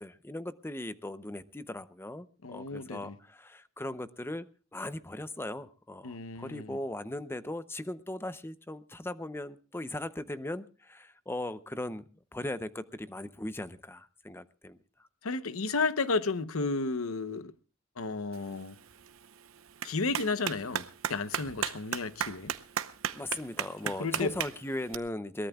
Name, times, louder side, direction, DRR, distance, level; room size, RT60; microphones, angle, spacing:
voice 1, 0.0-15.1 23.1-25.5, left 1 dB, 10° left, 0.6 m, -38 dB
voice 2, 2.4-3.2 6.0-6.8 15.2-17.5 18.0-18.8 19.8-22.5 24.0-24.3, left 3 dB, 85° left, 0.9 m, -32 dB
Clapping, 18.3-24.9, right 8 dB, 75° right, 0.8 m, -37 dB
22.5 x 19.0 x 2.3 m
head